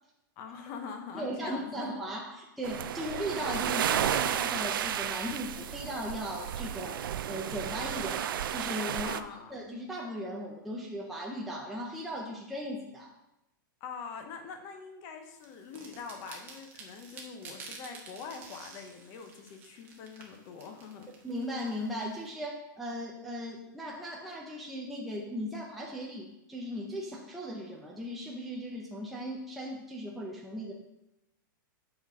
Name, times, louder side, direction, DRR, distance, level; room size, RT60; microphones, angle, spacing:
voice 1, 0.4-1.9 9.0-9.5 13.8-21.1, left 5 dB, 25° left, 5 dB, 0.7 m, -44 dB
voice 2, 1.1-7.0 7.3-9.2 9.5-13.1 21.2-30.7, equal, ahead, -3 dB, 0.5 m, -37 dB
sound 1, 2.6-9.2, right 10 dB, 80° right, 0.4 m, -32 dB
sound 2, 15.4-22.3, right 4 dB, 15° right, 0.9 m, -50 dB
7.9 x 4.1 x 4.7 m, 0.90 s
supercardioid pair, 175°, 11 cm